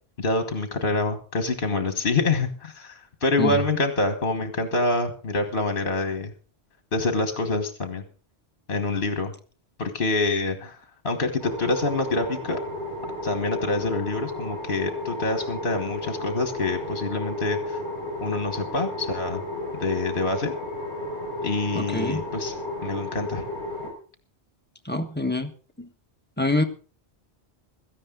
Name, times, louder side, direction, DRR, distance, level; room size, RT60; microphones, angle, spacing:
voice 1, 0.2-6.3 6.9-8.0 8.7-9.3 9.8-12.6 13.2-17.8 18.2-19.4 19.7-20.5 21.4-22.6 22.8-23.4, left 2 dB, 55° left, 7 dB, 1.6 m, -26 dB
sound 1, 11.4-23.9, left 1 dB, 45° right, 5.4 m, -33 dB
voice 2, 21.7-22.2 24.8-25.5 25.8-25.9 26.4-26.6, left 1 dB, 10° left, 5 dB, 1.4 m, -25 dB
16.5 x 14.0 x 3.9 m, 0.38 s
omnidirectional pair, 1.1 m